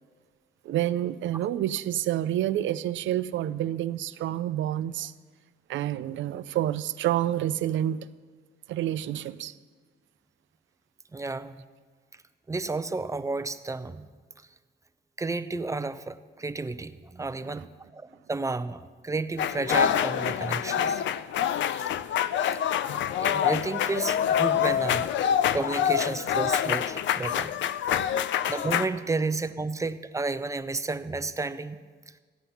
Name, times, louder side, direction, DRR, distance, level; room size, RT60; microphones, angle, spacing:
voice 1, 0.6-5.1 5.7-8.0 8.7-9.5 17.5-17.7 28.0-28.1, right 12 dB, 75° right, 0.5 m, -28 dB
voice 2, 11.1-11.6 12.5-14.1 15.2-21.0 23.2-25.2 25.5-27.5 28.5-31.8, right 3 dB, 15° right, 0.6 m, -32 dB
sound 1, 19.4-28.9, left 9 dB, 70° left, 0.5 m, -26 dB
13.5 x 9.0 x 5.7 m
cardioid pair, 90°, 20 cm